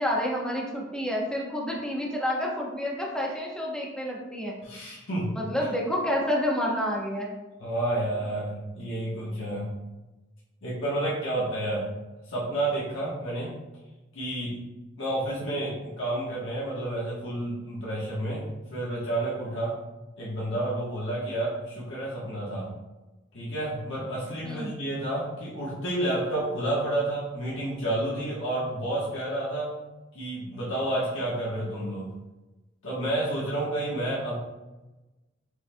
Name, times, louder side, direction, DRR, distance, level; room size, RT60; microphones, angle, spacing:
voice 1, 0.0-4.6 5.4-7.3 24.4-24.7, equal, 5° left, -3 dB, 0.8 m, -29 dB
voice 2, 4.6-5.3 7.6-9.7 10.6-11.9 12.3-13.5 14.1-14.6 15.0-18.4 18.7-19.7 20.2-22.7 23.3-29.7 30.1-32.1 32.8-34.3, right 1 dB, 80° left, -7 dB, 1.2 m, -30 dB
6.5 x 3.4 x 2.2 m, 1.1 s
head